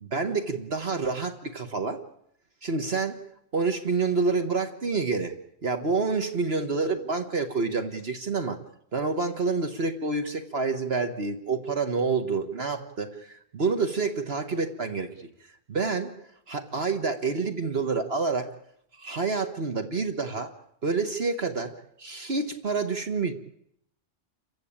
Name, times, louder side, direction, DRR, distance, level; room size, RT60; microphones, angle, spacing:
voice 1, 0.0-2.0 2.6-3.2 3.5-5.3 5.6-8.6 8.9-15.3 15.7-16.1 16.5-18.6 19.0-20.5 20.8-23.3, right 4 dB, 55° right, 7 dB, 1.7 m, -28 dB
29.0 x 15.0 x 8.8 m, 0.73 s
omnidirectional pair, 1.2 m